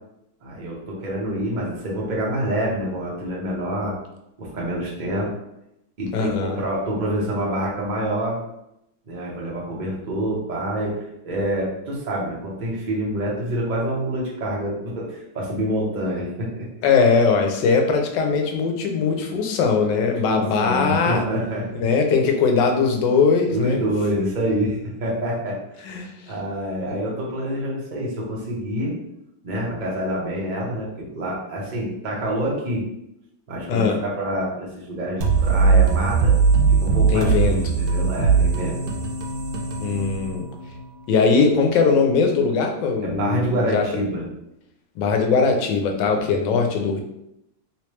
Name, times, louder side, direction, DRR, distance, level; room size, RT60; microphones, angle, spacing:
voice 1, 0.4-4.0 4.4-5.3 6.0-8.4 9.1-16.7 20.0-21.8 23.5-25.6 26.3-28.9 29.4-32.9 33.5-36.4 36.7-38.8 43.0-44.2 46.0-46.4, right 1 dB, 35° right, -4 dB, 0.7 m, -27 dB
voice 2, 6.1-6.6 16.8-21.2 21.7-23.8 25.8-26.1 33.7-34.0 37.1-37.5 39.8-40.4 41.1-43.8 45.0-47.0, left 5 dB, 80° left, 3 dB, 1.3 m, -20 dB
sound 1, 35.2-40.8, right 5 dB, 85° right, 1.3 m, -20 dB
3.1 x 3.1 x 3.1 m, 0.83 s
omnidirectional pair, 2.0 m